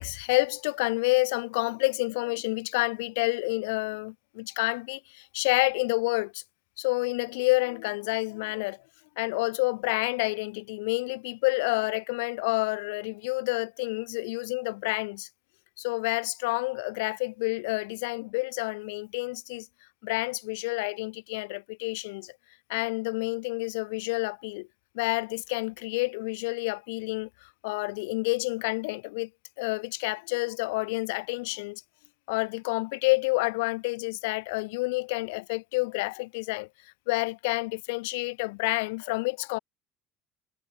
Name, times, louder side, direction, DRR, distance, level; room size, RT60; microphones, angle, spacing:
voice 1, 0.0-6.4 6.8-8.8 9.2-15.3 15.8-19.7 20.0-22.3 22.7-24.7 24.9-29.3 29.6-31.8 32.3-36.7 37.1-39.6, left 26 dB, 75° left, 0.3 m, -29 dB
hypercardioid pair, 65°, 0 cm